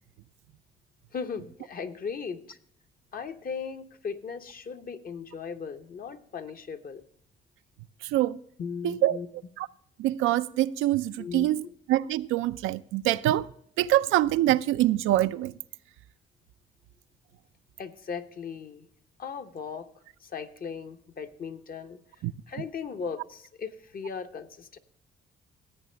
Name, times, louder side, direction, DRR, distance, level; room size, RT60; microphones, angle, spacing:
voice 1, 1.1-2.6 3.1-7.0 8.6-9.3 11.2-11.5 17.8-18.9 19.2-19.9 20.2-22.0 22.5-24.8, left 6 dB, 45° left, 0.9 m, -37 dB
voice 2, 10.0-11.6 11.9-13.5 13.8-15.5 22.2-22.3, right 14 dB, 90° right, 0.4 m, -24 dB
15.5 x 8.4 x 3.3 m
cardioid pair, 90°, 20 cm